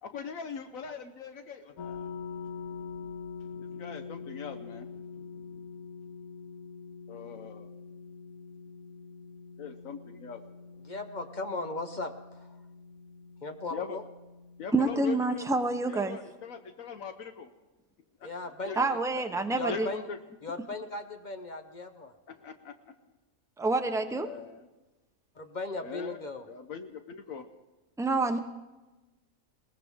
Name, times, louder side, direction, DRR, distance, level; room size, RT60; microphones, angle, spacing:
voice 1, 0.0-2.1 3.8-5.0 7.1-7.7 9.6-10.4 13.7-14.0 14.6-15.5 15.9-17.5 18.2-18.3 18.7-18.9 19.7-20.2 22.3-22.9 24.1-24.6 25.8-26.2 26.5-27.5, left 6 dB, 70° left, 8 dB, 1.2 m, -41 dB
sound 1, 1.8-15.9, left 5 dB, 85° left, 1.4 m, -45 dB
voice 2, 10.8-12.1 12.4-12.6 13.4-14.0 18.2-20.1 20.4-22.1 25.4-26.4, left 2 dB, 40° left, 7 dB, 0.8 m, -37 dB
voice 3, 14.7-16.2 18.8-19.9 23.6-24.3 28.0-28.4, right 3 dB, 5° right, 6 dB, 0.4 m, -27 dB
21.0 x 18.5 x 3.6 m, 1.1 s
omnidirectional pair, 1.5 m